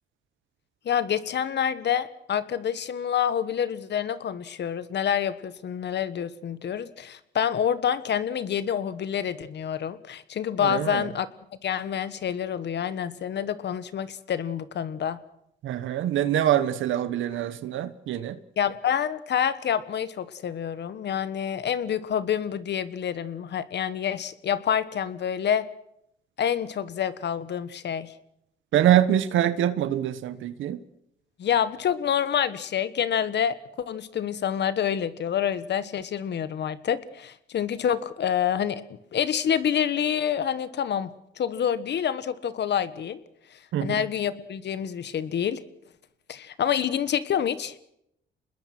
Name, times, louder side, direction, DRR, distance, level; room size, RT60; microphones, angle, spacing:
voice 1, 0.8-11.3 11.6-15.2 18.6-25.7 26.4-28.1 31.4-38.8 39.1-41.1 41.4-43.2 43.8-45.6 46.3-47.7, left 9 dB, 60° left, 14 dB, 1.5 m, -27 dB
voice 2, 10.6-11.1 15.6-18.4 28.7-30.8 43.7-44.0, right 11 dB, 80° right, 13 dB, 1.2 m, -24 dB
25.5 x 21.0 x 6.1 m, 0.75 s
cardioid pair, 90°, 20 cm